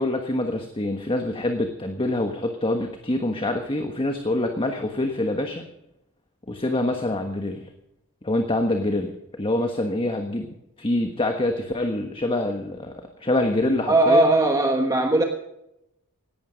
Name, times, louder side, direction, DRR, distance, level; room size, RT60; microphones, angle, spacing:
voice 1, 0.0-5.6 6.5-7.7 8.2-14.3, left 1 dB, 25° left, 5 dB, 1.3 m, -25 dB
voice 2, 13.9-15.2, right 2 dB, 15° right, 3 dB, 1.3 m, -18 dB
17.5 x 12.0 x 5.1 m, 0.85 s
head